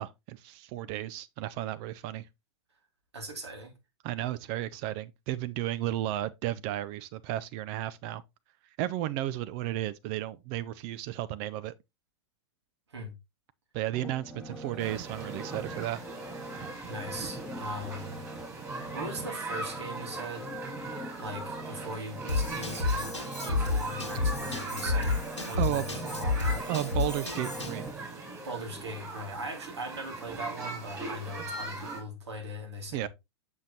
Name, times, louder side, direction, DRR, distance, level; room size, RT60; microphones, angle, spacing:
voice 1, 0.0-2.3 4.0-8.2 8.8-11.7 13.7-16.0 25.6-25.9 26.7-27.8 32.9-33.1, right 14 dB, 35° right, 0.4 m, -33 dB
voice 2, 3.1-3.7 12.9-13.1 16.9-18.2 18.9-20.5 21.2-23.1 23.4-26.6 28.4-33.1, right 1 dB, 70° right, 2.4 m, -39 dB
sound 1, 13.9-29.0 29.4-29.5, right 1 dB, 5° right, 1.2 m, -42 dB
sound 2, 14.8-32.0, right 3 dB, 20° right, 3.2 m, -40 dB
Drum kit / Drum, 22.3-27.9, left 3 dB, 85° left, 1.3 m, -31 dB
7.3 x 6.2 x 2.7 m
figure-of-eight pair, 95°, 15 cm